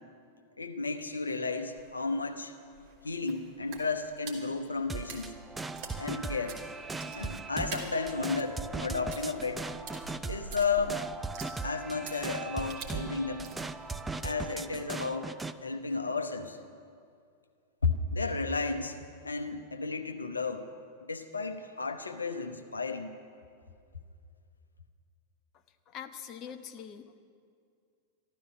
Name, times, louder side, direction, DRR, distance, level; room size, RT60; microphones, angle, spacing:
voice 1, 0.6-2.5 3.0-5.3 6.0-6.6 7.0-9.7 10.3-11.0 11.6-13.5 14.2-15.3 15.6-16.6 17.8-19.0 19.2-20.7 21.0-23.1, left 4 dB, 80° left, 6 dB, 0.8 m, -33 dB
sound 1, 1.7-14.8, right 4 dB, 45° right, 2.3 m, -48 dB
sound 2, 4.9-15.6, right 3 dB, 10° right, 0.5 m, -39 dB
voice 2, 25.9-27.2, left 8 dB, 35° left, 8 dB, 0.7 m, -43 dB
14.0 x 12.5 x 6.7 m, 2.3 s
figure-of-eight pair, 90°, 0 cm